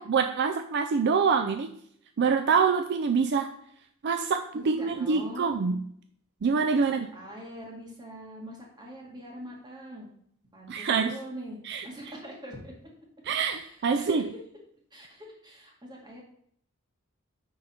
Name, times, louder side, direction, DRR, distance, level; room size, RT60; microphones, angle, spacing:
voice 1, 0.0-1.7 2.2-3.5 4.0-5.8 6.4-7.1 10.7-11.1 11.6-11.9 13.3-14.3, right 5 dB, 55° right, 7 dB, 0.4 m, -25 dB
voice 2, 4.5-5.6 6.8-10.1 10.5-12.7 13.4-14.2 14.9-16.2, equal, 20° right, -2 dB, 1.9 m, -43 dB
9.5 x 3.9 x 4.3 m, 0.68 s
head